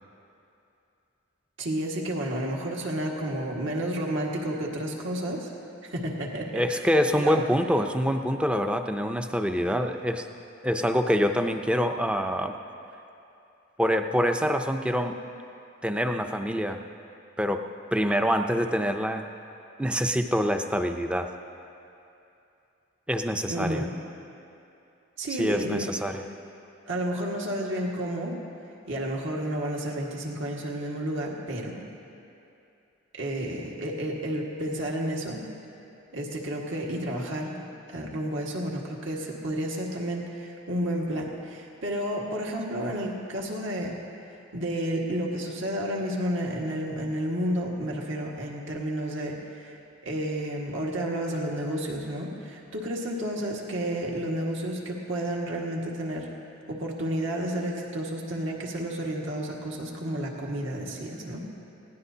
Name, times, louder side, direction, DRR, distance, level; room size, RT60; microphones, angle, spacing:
voice 1, 1.6-5.5 5.8-6.6 7.1-7.4 23.5-23.9 25.2-25.9 26.9-28.4 28.9-31.8 33.2-35.4 36.1-37.6 37.9-44.0 44.5-49.8 50.0-56.3 56.7-61.5, right 1 dB, 70° right, -2 dB, 1.8 m, -31 dB
voice 2, 6.5-10.3 10.6-12.5 13.8-15.2 15.8-16.8 17.4-17.6 17.9-19.3 19.8-21.3 23.1-23.9 25.4-26.2, equal, 5° right, 6 dB, 0.5 m, -25 dB
21.0 x 17.0 x 2.8 m, 2.7 s
head